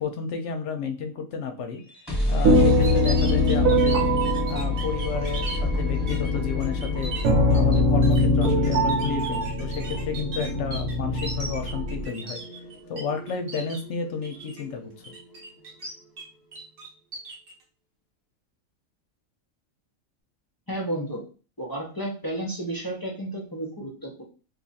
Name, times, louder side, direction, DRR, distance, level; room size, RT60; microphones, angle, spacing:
voice 1, 0.0-1.8 2.3-4.0 4.5-7.1 7.5-12.4 12.9-14.9, left 6 dB, 65° left, 6 dB, 0.8 m, -31 dB
sound 1, 1.8-15.6, left 2 dB, ahead, 1.0 m, -32 dB
sound 2, 2.4-12.0, left 1 dB, 85° right, 1.1 m, -23 dB
sound 3, 2.6-5.6 6.1-6.3 6.6-13.0 13.3-13.8 14.2-14.6 15.0-16.2 16.5-17.5, right 3 dB, 50° right, 0.9 m, -38 dB
voice 2, 20.7-21.2 21.6-24.2, right 1 dB, 25° left, -3 dB, 0.5 m, -32 dB
2.8 x 2.4 x 4.0 m, 0.37 s
omnidirectional pair, 1.4 m